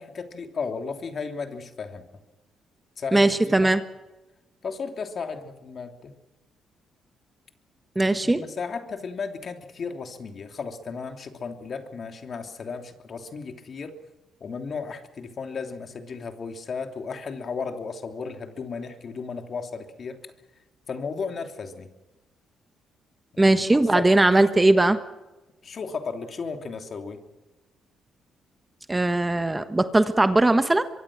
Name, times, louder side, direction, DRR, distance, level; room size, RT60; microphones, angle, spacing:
voice 1, 0.0-2.0 3.0-3.7 4.6-6.1 8.2-13.9 14.4-20.2 20.9-21.9 23.3-24.1 25.6-27.2, left 5 dB, 50° left, 5 dB, 3.1 m, -34 dB
voice 2, 3.1-3.8 7.9-8.4 23.4-25.0 28.9-30.8, right 2 dB, 15° right, 10 dB, 1.4 m, -19 dB
24.0 x 23.5 x 6.3 m, 1.1 s
cardioid pair, 90°, 0 cm